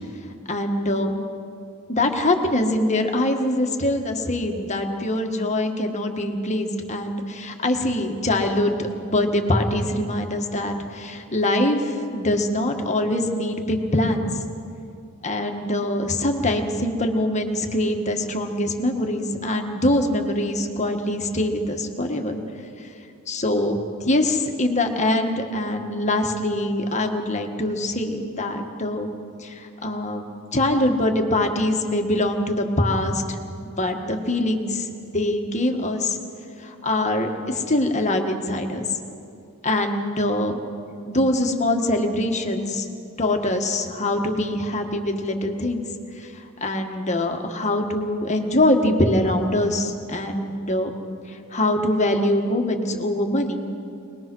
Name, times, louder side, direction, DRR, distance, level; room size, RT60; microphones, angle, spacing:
voice 1, 0.5-1.2 1.9-14.5 15.2-22.4 22.8-22.9 23.3-29.1 29.4-33.4 33.6-36.2 36.6-38.8 39.6-40.6 41.1-42.9 43.2-45.9 46.2-50.9 51.3-53.6, left 1 dB, 35° left, 4 dB, 1.6 m, -23 dB
24.0 x 20.0 x 6.2 m, 2.5 s
head